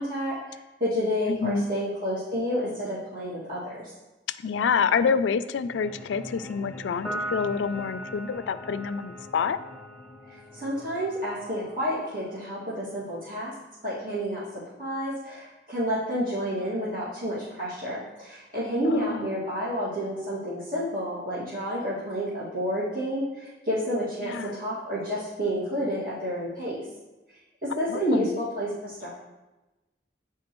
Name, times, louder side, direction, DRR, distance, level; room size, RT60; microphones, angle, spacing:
voice 1, 0.0-3.8 10.3-13.5 13.8-14.5 14.8-26.9 27.3-27.4 27.8-29.1, equal, 50° right, -12 dB, 2.1 m, -30 dB
voice 2, 1.3-1.7 4.4-9.6 18.9-19.3 24.2-24.6 27.9-28.4, left 6 dB, 85° left, 13 dB, 0.3 m, -27 dB
sound 1, 5.7-11.7, left 2 dB, 15° left, 0.8 m, -46 dB
Piano, 7.0-13.7, right 1 dB, 5° right, 0.5 m, -41 dB
8.4 x 4.7 x 3.0 m, 1.1 s
head